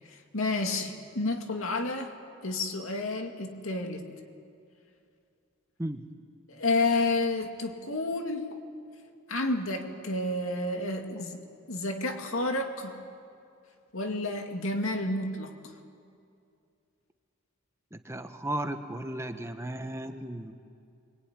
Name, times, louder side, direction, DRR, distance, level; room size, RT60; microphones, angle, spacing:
voice 1, 0.3-2.2 2.4-4.1 6.5-8.5 9.3-13.0 13.9-15.6, left 2 dB, 75° left, 4 dB, 2.3 m, -30 dB
voice 2, 17.9-20.5, right 1 dB, 15° right, 7 dB, 1.1 m, -35 dB
24.0 x 22.5 x 9.7 m, 2.5 s
head